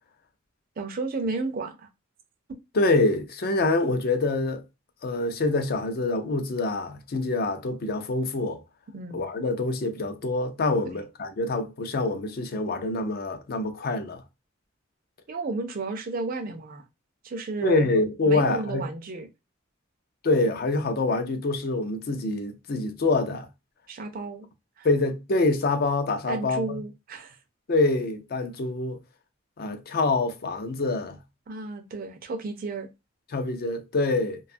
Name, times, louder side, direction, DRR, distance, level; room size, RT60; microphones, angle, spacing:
voice 1, 0.8-1.9 8.9-9.2 15.3-16.9 17.2-17.9 18.3-19.3 23.9-24.5 24.8-24.9 26.3-27.4 31.5-32.9, right 3 dB, 45° right, 0.4 m, -32 dB
voice 2, 2.8-4.6 5.0-8.6 9.1-14.2 17.6-18.8 20.2-23.5 24.8-26.8 27.7-29.0 29.6-31.2 33.3-34.4, left 2 dB, 50° left, 0.4 m, -25 dB
2.7 x 2.3 x 2.4 m
head